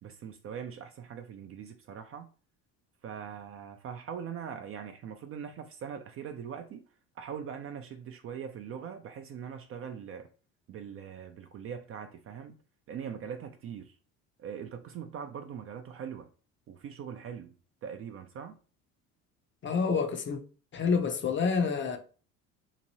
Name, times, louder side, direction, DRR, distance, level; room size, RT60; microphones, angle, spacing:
voice 1, 0.0-2.3 3.0-6.8 7.2-10.3 10.7-12.6 12.9-14.0 14.4-16.3 16.7-17.5 17.8-18.6, right 7 dB, 35° right, 0.4 m, -41 dB
voice 2, 19.6-20.4 20.7-22.0, left 5 dB, 30° left, 0.5 m, -28 dB
2.9 x 2.5 x 2.8 m
hypercardioid pair, 65°, 42 cm